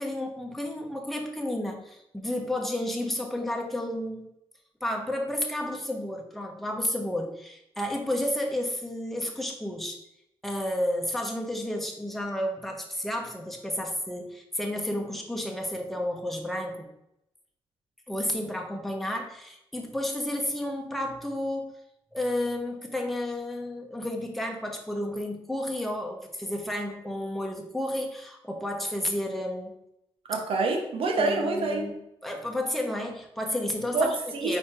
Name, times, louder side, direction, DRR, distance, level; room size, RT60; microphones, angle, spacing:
voice 1, 0.0-4.3 4.8-10.0 10.4-16.9 18.1-21.7 22.1-29.8 31.2-31.9 32.2-34.1 34.4-34.6, left 1 dB, ahead, 1 dB, 1.2 m, -31 dB
voice 2, 30.3-31.9 33.9-34.6, right 3 dB, 75° right, 4 dB, 1.2 m, -27 dB
5.0 x 4.3 x 4.4 m, 0.83 s
cardioid pair, 75°, 10 cm